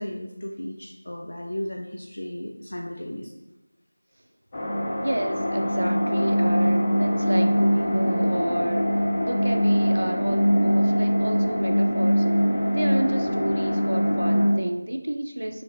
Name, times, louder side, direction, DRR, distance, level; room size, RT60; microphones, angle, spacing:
voice 1, 0.0-3.3, left 1 dB, 75° left, 0 dB, 0.5 m, -35 dB
sound 1, 4.5-14.5, equal, 15° left, 0.4 m, -22 dB
voice 2, 5.0-12.3 12.7-15.6, right 1 dB, 80° right, 6 dB, 0.5 m, -30 dB
3.7 x 3.4 x 3.3 m, 0.97 s
figure-of-eight pair, 180°, 0 cm